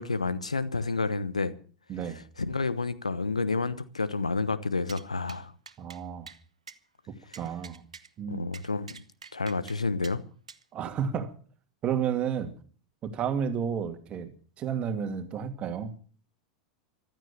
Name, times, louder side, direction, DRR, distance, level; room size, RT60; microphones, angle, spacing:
voice 1, 0.0-1.5 2.4-5.5 7.3-7.4 8.3-9.0 9.3-10.2, left 3 dB, 85° left, 1.0 m, -30 dB
voice 2, 1.9-2.2 5.8-6.3 7.4-7.8 8.2-8.5 10.7-11.3 11.8-12.5 13.0-14.3 14.6-15.9, right 7 dB, 35° right, 2.5 m, -31 dB
sound 1, 4.9-5.0 5.3-5.4 5.7-6.0 6.3-6.4 6.7-6.8 7.3-8.1 8.5-9.8 10.0-10.2 10.5-10.6, right 6 dB, 80° right, 1.0 m, -46 dB
15.0 x 12.5 x 6.9 m
figure-of-eight pair, 85°, 3 cm